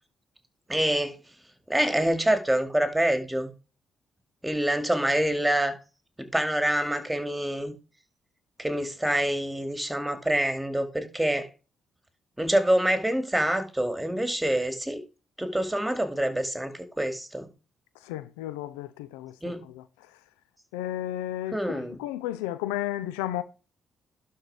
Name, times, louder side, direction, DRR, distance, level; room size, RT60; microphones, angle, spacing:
voice 1, 0.7-1.2 1.7-3.5 4.4-5.8 6.2-7.7 8.6-11.5 12.4-15.0 15.4-17.5 19.4-19.6 21.5-22.0, right 1 dB, 10° right, 2.4 m, -26 dB
voice 2, 18.0-19.3 19.6-19.8 20.7-23.4, left 13 dB, 90° left, 0.6 m, -33 dB
12.0 x 4.5 x 4.9 m
hypercardioid pair, 50°, 0 cm